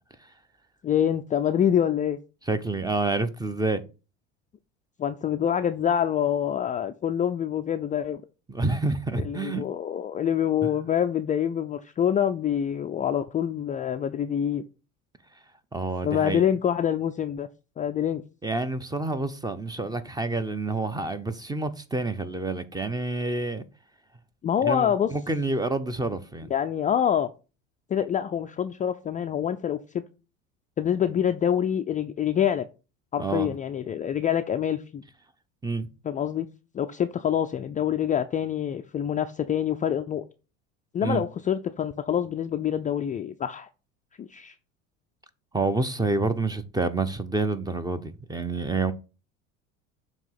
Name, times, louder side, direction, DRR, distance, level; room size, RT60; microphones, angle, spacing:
voice 1, 0.8-2.2 5.0-8.2 9.1-14.6 16.0-17.5 17.8-18.2 24.4-25.1 26.5-27.3 27.9-30.0 30.8-32.7 33.1-35.0 36.0-36.5 36.7-40.2 40.9-43.7 44.2-44.6, left 9 dB, 20° left, 0.4 m, -26 dB
voice 2, 2.5-3.8 8.5-9.6 10.6-10.7 15.7-16.4 18.4-23.6 24.6-26.5 33.2-33.5 35.6-35.9 41.0-41.2 45.5-48.9, right 3 dB, 10° right, 0.7 m, -28 dB
7.2 x 3.0 x 5.7 m
hypercardioid pair, 80°, 37 cm